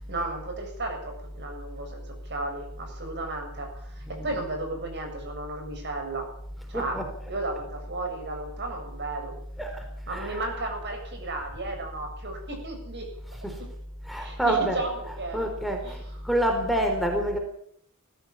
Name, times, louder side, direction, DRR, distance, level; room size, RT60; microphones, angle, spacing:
voice 1, 0.0-6.3 6.7-7.0 7.3-9.4 10.1-13.1 13.6-13.7 14.2-15.5 15.8-16.0, right 2 dB, 50° right, 4 dB, 7.2 m, -34 dB
voice 2, 4.1-4.4 6.7-7.1 9.6-10.5 13.4-13.6 14.1-16.0 16.2-17.4, right 1 dB, ahead, 3 dB, 4.1 m, -28 dB
20.5 x 15.5 x 8.8 m, 0.67 s
head